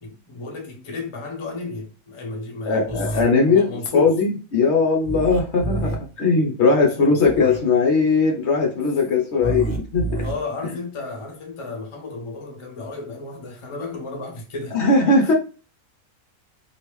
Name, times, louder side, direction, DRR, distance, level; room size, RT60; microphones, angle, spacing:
voice 1, 0.0-4.1 5.6-5.8 6.7-7.2 9.4-9.6 10.2-14.8 15.2-15.3, left 3 dB, 30° left, 0.5 m, -33 dB
voice 2, 2.7-10.2 14.7-15.3, left 3 dB, 60° left, 0.8 m, -19 dB
sound 1, 2.8-3.2 5.0-6.0 7.2-7.6 9.4-10.3, right 2 dB, 15° right, 1.1 m, -28 dB
3.4 x 2.6 x 3.0 m
omnidirectional pair, 1.6 m